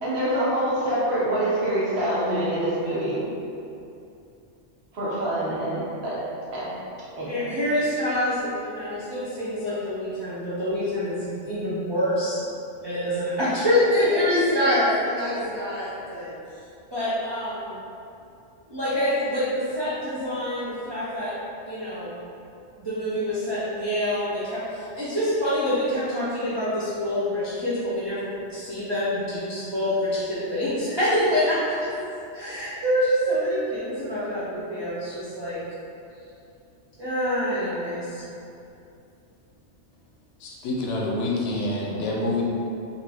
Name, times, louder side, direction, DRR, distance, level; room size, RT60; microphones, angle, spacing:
voice 1, 0.0-3.2 4.9-6.2 6.5-6.7 7.2-7.4, right 1 dB, 60° right, -8 dB, 1.0 m, -25 dB
voice 2, 7.3-12.4 12.8-16.3 16.9-17.8 18.7-21.3 21.6-22.2 22.8-31.9 32.3-35.6 37.0-38.2, equal, 40° right, -12 dB, 0.4 m, -26 dB
voice 3, 40.4-42.4, left 2 dB, 75° left, -3 dB, 0.9 m, -27 dB
2.5 x 2.5 x 3.3 m, 2.6 s
omnidirectional pair, 1.2 m